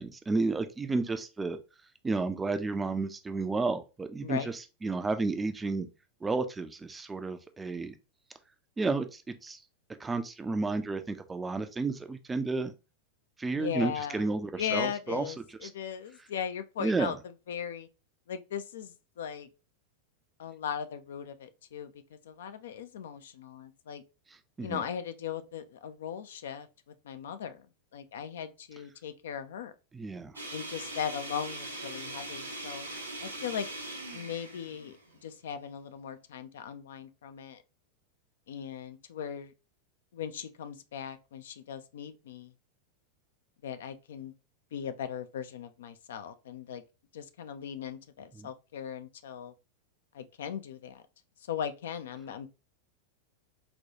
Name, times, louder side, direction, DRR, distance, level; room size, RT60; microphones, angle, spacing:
voice 1, 0.0-1.6 2.0-5.9 6.2-7.9 8.8-9.6 10.0-12.7 13.4-15.3 15.6-15.7 16.8-17.1 24.6-24.8 29.9-30.4 48.4-48.5, right 3 dB, 15° right, 0.4 m, -32 dB
voice 2, 13.5-14.3 14.6-17.2 17.5-17.9 18.3-19.5 20.4-21.9 22.3-24.0 24.6-26.7 27.0-27.6 27.9-29.7 30.5-32.9 33.2-33.7 34.1-35.0 35.2-37.6 38.5-39.5 40.1-42.5 43.6-44.3 44.7-46.8 47.1-49.5 50.1-51.0 51.5-52.5, left 8 dB, 60° left, 0.3 m, -38 dB
sound 1, 30.3-35.5, right 2 dB, 80° right, 0.7 m, -41 dB
4.1 x 2.2 x 2.7 m
figure-of-eight pair, 90°, 0 cm